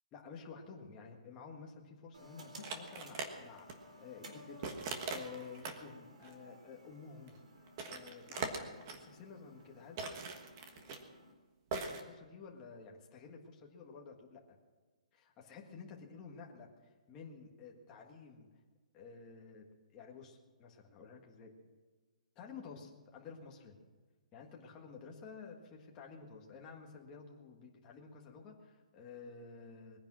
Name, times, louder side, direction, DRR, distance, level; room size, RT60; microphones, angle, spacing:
voice 1, 0.1-7.3 7.9-10.0 11.7-14.6 15.1-16.7 17.1-18.5 18.9-21.5 22.3-23.8 24.3-30.0, left 5 dB, 15° left, 0 dB, 1.7 m, -52 dB
sound 1, 2.1-11.3, equal, 70° right, 4.1 m, -57 dB
sound 2, 2.6-3.3 3.6-3.7 4.6-5.8 6.2-6.3 7.3-7.4 7.7-9.0 10.0-11.0 11.7-12.0, right 4 dB, 25° right, 1.4 m, -41 dB
21.0 x 10.5 x 6.3 m, 1.4 s
hypercardioid pair, 175°, 4 cm